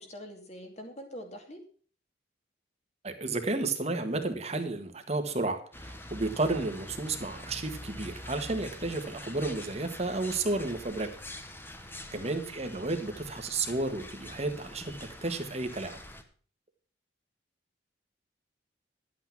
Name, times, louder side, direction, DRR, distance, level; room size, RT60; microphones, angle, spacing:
voice 1, 0.0-1.6 12.1-12.5, equal, 40° left, 3 dB, 2.6 m, -45 dB
voice 2, 3.0-11.1 12.1-16.0, right 2 dB, 35° right, 7 dB, 1.6 m, -32 dB
sound 1, 5.7-16.2, left 1 dB, 10° left, 1.1 m, -45 dB
11.5 x 8.5 x 5.9 m, 0.43 s
head